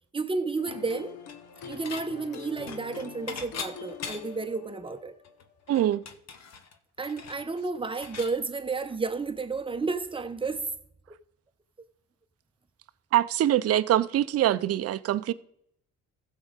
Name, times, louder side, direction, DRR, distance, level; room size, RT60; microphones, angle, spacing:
voice 1, 0.1-1.1 1.7-5.2 7.0-10.7, right 4 dB, 15° right, 0.8 m, -31 dB
sound 1, 0.6-6.1, left 7 dB, 80° left, 1.1 m, -45 dB
Dishes pots and pans / Chink clink, 1.3-2.1 2.3-4.5 4.9-5.0 5.2-8.4, left 6 dB, 60° left, 1.0 m, -41 dB
voice 2, 5.7-6.0 13.1-15.3, right 12 dB, 55° right, 0.5 m, -24 dB
15.0 x 6.2 x 4.0 m
cardioid pair, 90°, 30 cm